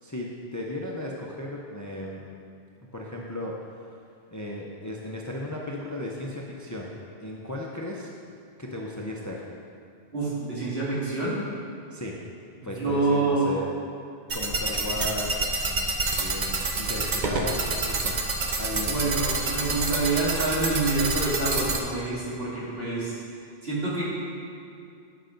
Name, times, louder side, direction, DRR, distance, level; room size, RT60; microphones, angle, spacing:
voice 1, 0.0-2.2 2.9-3.5 3.8-3.9 4.3-6.9 7.2-8.1 8.6-9.5 11.9-12.2 12.6-13.7 14.3-18.2 18.6-19.1, left 1 dB, 20° left, -2 dB, 0.5 m, -35 dB
voice 2, 10.1-11.4 12.6-13.6 18.8-23.1 23.6-24.0, right 3 dB, 70° right, -8 dB, 2.4 m, -27 dB
sound 1, 14.3-21.8, right 3 dB, 50° right, 0.7 m, -28 dB
8.0 x 4.9 x 5.1 m, 2.5 s
omnidirectional pair, 1.0 m